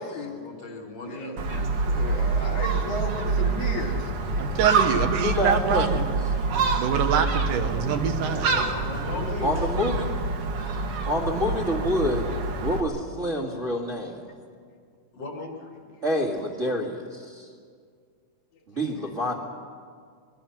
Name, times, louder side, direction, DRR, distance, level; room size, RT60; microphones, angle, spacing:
voice 1, 0.2-1.7 8.0-9.7 10.0-10.2 11.3-11.6 15.1-15.5, left 3 dB, 50° left, 1 dB, 3.0 m, -39 dB
voice 2, 1.1-1.5 1.8-4.1 9.0-9.6, left 2 dB, 65° left, -1 dB, 3.6 m, -34 dB
Gull seagull, 1.4-12.8, right 4 dB, 50° right, 2.1 m, -26 dB
voice 3, 4.4-6.1 6.8-8.5, right 7 dB, 75° right, 6 dB, 2.7 m, -25 dB
voice 4, 5.2-5.9 9.4-10.1 11.0-12.3 12.6-14.3 16.0-17.5 18.7-19.3, equal, 30° right, -2 dB, 1.8 m, -27 dB
25.5 x 22.0 x 5.9 m, 2.1 s
omnidirectional pair, 3.8 m